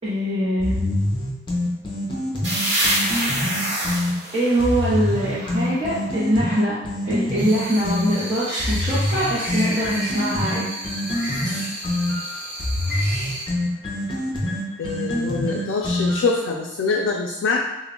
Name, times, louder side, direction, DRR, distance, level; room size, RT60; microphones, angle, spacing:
voice 1, 0.0-1.1 4.3-6.7 7.0-10.7, equal, 30° right, -11 dB, 0.6 m, -23 dB
sound 1, 0.6-4.1 4.6-8.1 8.6-16.4, left 1 dB, 25° left, 0.5 m, -25 dB
sound 2, 2.4-6.0, right 1 dB, 65° right, 1.0 m, -26 dB
sound 3, 7.4-13.5, right 1 dB, 10° right, 1.1 m, -32 dB
voice 2, 14.8-17.6, left 4 dB, 90° left, -1 dB, 0.3 m, -24 dB
2.2 x 2.0 x 3.6 m, 0.99 s
head